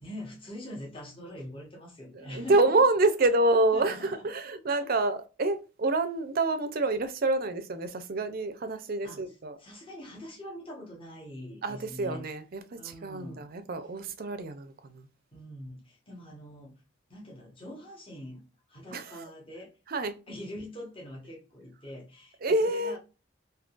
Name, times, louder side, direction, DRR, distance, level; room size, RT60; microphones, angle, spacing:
voice 1, 0.0-2.8 3.5-4.2 4.7-5.0 9.0-12.2 12.7-13.4 15.3-16.8 17.1-18.4 18.7-19.7 20.3-23.0, left 1 dB, 30° left, 1.2 m, -44 dB
voice 2, 2.3-9.6 11.6-15.0 18.9-19.3 19.9-20.2 22.4-23.0, right 2 dB, 50° right, 0.5 m, -27 dB
3.7 x 2.7 x 2.4 m
head